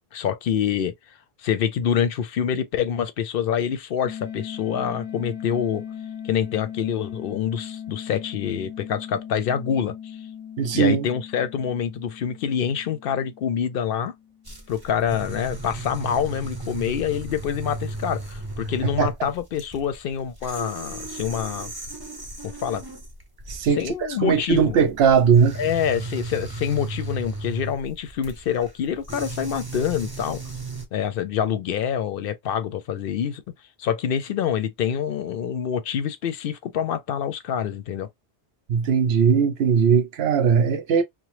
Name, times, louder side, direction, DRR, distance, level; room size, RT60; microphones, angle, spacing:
voice 1, 0.1-0.9 1.4-5.8 6.2-10.2 10.7-14.1 14.7-21.7 22.4-22.8 23.8-24.8 25.6-30.4 30.9-33.4 33.8-38.1, left 8 dB, 65° left, 0.7 m, -26 dB
sound 1, 4.0-14.7, left 8 dB, 30° left, 0.7 m, -38 dB
voice 2, 10.6-11.1 19.0-19.1 23.5-23.8 24.2-25.6 38.7-41.0, right 6 dB, 80° right, 0.9 m, -19 dB
sound 2, 14.4-30.8, right 2 dB, 25° right, 0.7 m, -36 dB
2.9 x 2.0 x 3.0 m
omnidirectional pair, 1.1 m